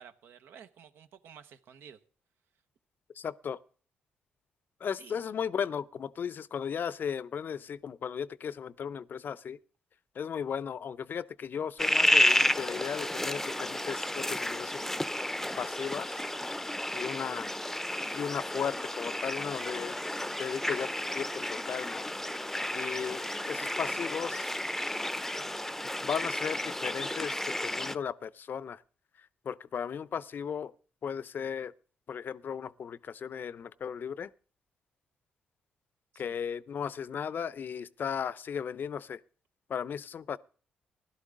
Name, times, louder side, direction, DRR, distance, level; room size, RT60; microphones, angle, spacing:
voice 1, 0.0-2.0 5.0-5.2 36.1-36.4, right 8 dB, 75° right, 1.0 m, -52 dB
voice 2, 3.2-3.6 4.8-9.6 10.1-14.8 15.6-16.1 16.9-17.5 18.1-20.0 20.4-22.1 22.7-24.5 26.0-27.4 27.6-28.8 29.4-30.7 31.0-31.7 32.1-34.3 36.2-39.2 39.7-40.4, left 7 dB, 55° left, 0.6 m, -36 dB
sound 1, 11.8-28.0, left 1 dB, 10° left, 0.6 m, -31 dB
16.0 x 12.0 x 3.8 m
supercardioid pair, 55°, 4 cm